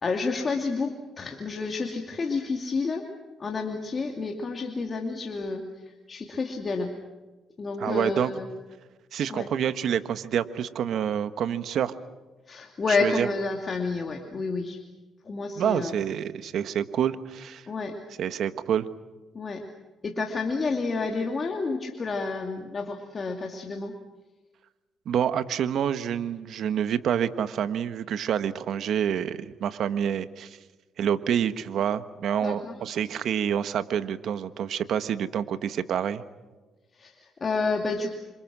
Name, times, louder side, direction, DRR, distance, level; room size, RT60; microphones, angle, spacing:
voice 1, 0.0-3.1 3.4-6.9 7.6-8.5 9.3-9.5 12.5-14.8 15.2-15.9 17.7-18.0 19.3-19.6 20.0-23.9 32.4-32.7 37.0-38.1, left 4 dB, 40° left, 3 dB, 2.7 m, -30 dB
voice 2, 7.8-8.3 9.1-11.9 12.9-13.3 15.6-17.7 18.2-18.9 25.0-30.6 31.0-36.2, right 9 dB, 70° right, 12 dB, 1.4 m, -27 dB
28.5 x 26.0 x 6.3 m, 1.2 s
cardioid pair, 90°, 0 cm